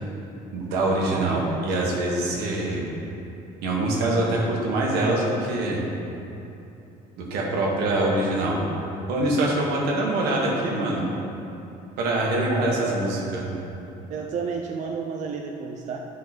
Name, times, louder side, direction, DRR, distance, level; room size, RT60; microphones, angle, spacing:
voice 1, 0.5-2.8 3.6-5.8 7.2-8.6 9.1-11.1 12.0-13.4, right 2 dB, 85° right, -3 dB, 1.7 m, -24 dB
voice 2, 1.1-1.6 7.9-8.0 9.8-9.9 12.4-13.0 14.1-16.0, right 5 dB, 50° right, 1 dB, 0.6 m, -31 dB
10.0 x 5.1 x 4.4 m, 2.9 s
cardioid pair, 120°, 16 cm